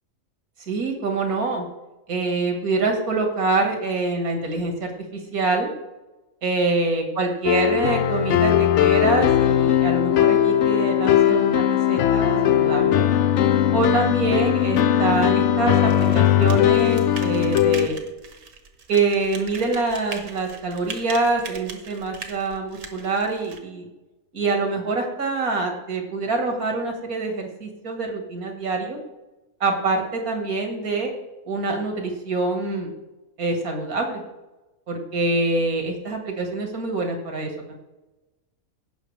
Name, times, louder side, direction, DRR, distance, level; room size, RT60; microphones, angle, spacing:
voice 1, 0.7-1.7 2.1-5.7 6.4-13.1 13.7-18.0 18.9-23.9 24.3-29.0 29.6-31.1 31.5-32.9 33.4-34.2 34.9-37.7, right 3 dB, 85° right, 2 dB, 2.2 m, -25 dB
sound 1, 7.5-17.9, left 10 dB, 65° left, 0.8 m, -19 dB
sound 2, 15.8-23.6, right 5 dB, 65° right, 1.5 m, -40 dB
17.0 x 6.0 x 3.4 m, 1.0 s
omnidirectional pair, 1.5 m